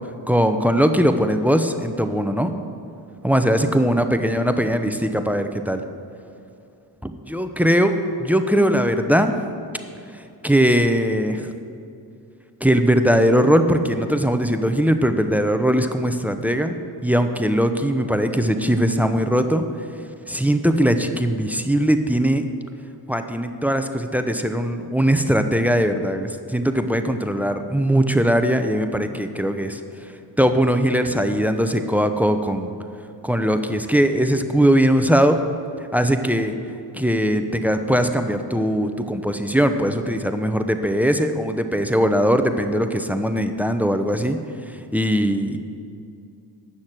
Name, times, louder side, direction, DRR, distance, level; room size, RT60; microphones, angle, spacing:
voice 1, 0.3-2.5 3.2-5.8 7.0-9.4 10.4-11.5 12.6-16.7 17.0-19.6 20.3-22.4 23.1-29.8 30.4-32.7 33.2-35.4 35.9-36.6 36.9-44.4 44.7-45.6, equal, 5° right, 8 dB, 0.8 m, -20 dB
9.9 x 6.4 x 7.6 m, 2.5 s
supercardioid pair, 40°, 48 cm